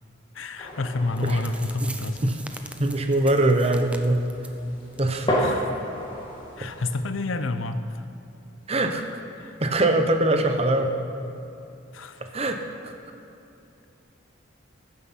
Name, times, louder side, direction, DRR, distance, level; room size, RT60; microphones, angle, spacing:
voice 1, 0.3-2.3 5.4-5.7 6.6-8.0 9.4-9.6 11.9-12.2, left 2 dB, 85° left, 10 dB, 0.7 m, -29 dB
Army Training - Distant Gunfire, 0.6-7.0, equal, 25° left, 2.1 m, -33 dB
sound 1, 0.9-1.0 1.2-4.6 4.9-5.1 5.4-5.5 6.0-6.1, right 2 dB, 5° right, 0.5 m, -42 dB
voice 2, 2.8-4.2 5.0-5.3 6.6-6.7 8.7-9.0 9.6-10.9 12.3-12.6 12.8-13.0, right 2 dB, 30° right, 5 dB, 0.9 m, -22 dB
14.5 x 9.5 x 5.7 m, 2.8 s
head